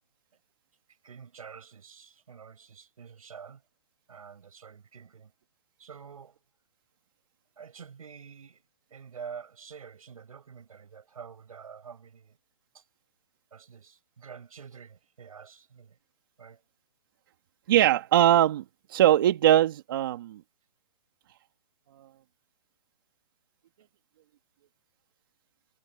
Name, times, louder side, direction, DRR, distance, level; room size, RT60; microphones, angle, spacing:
voice 1, 1.0-3.6 4.1-5.3 5.8-6.3 7.6-8.6 8.9-12.3 13.5-15.9 16.4-16.6, right 6 dB, 80° right, 6.1 m, -47 dB
voice 2, 17.7-18.6 18.9-20.4 22.0-22.1, right 12 dB, 40° right, 1.9 m, -21 dB
hypercardioid pair, 170°, 18 cm